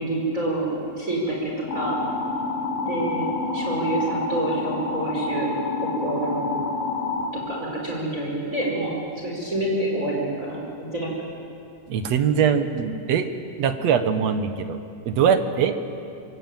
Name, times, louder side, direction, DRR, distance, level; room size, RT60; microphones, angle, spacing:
voice 1, 0.0-2.0 2.8-3.3 3.5-5.5 5.8-6.6 7.3-8.9 9.2-11.1, right 2 dB, 20° right, -2 dB, 5.3 m, -27 dB
sound 1, 1.7-7.3, left 4 dB, 85° left, 4.4 m, -28 dB
voice 2, 11.9-13.3 13.6-14.8 15.1-15.8, right 7 dB, 60° right, 8 dB, 2.2 m, -22 dB
24.5 x 24.5 x 9.1 m, 2.6 s
omnidirectional pair, 3.9 m